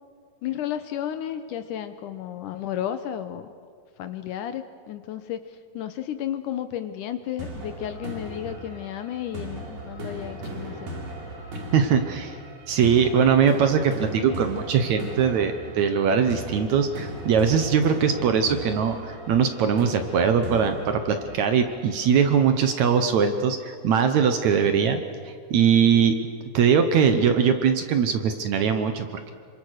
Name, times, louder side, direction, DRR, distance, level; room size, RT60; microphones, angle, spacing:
voice 1, 0.4-3.5 4.0-5.4 5.7-10.9, left 10 dB, 75° left, 10 dB, 2.1 m, -32 dB
sound 1, 7.4-22.4, right 1 dB, 80° right, 5.9 m, -38 dB
voice 2, 11.7-12.4 12.7-25.0 25.5-26.2 26.5-29.3, right 7 dB, 65° right, 8 dB, 2.1 m, -21 dB
27.0 x 25.0 x 6.5 m, 2.1 s
omnidirectional pair, 4.1 m